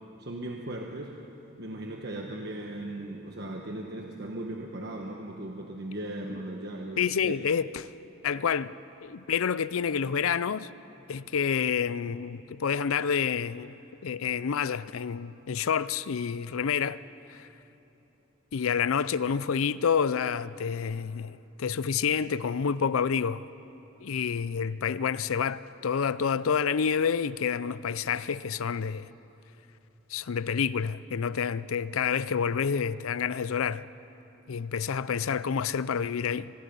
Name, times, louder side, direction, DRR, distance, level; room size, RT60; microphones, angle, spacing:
voice 1, 0.2-1.2 1.6-7.3, right 1 dB, 50° right, 1.2 m, -37 dB
voice 2, 7.0-7.7 8.2-8.7 9.0-10.7 11.1-13.7 14.0-17.0 17.3-17.5 18.5-23.4 24.0-29.1 30.1-33.8 34.5-36.5, left 7 dB, 85° left, 0.5 m, -28 dB
25.0 x 20.5 x 5.4 m
head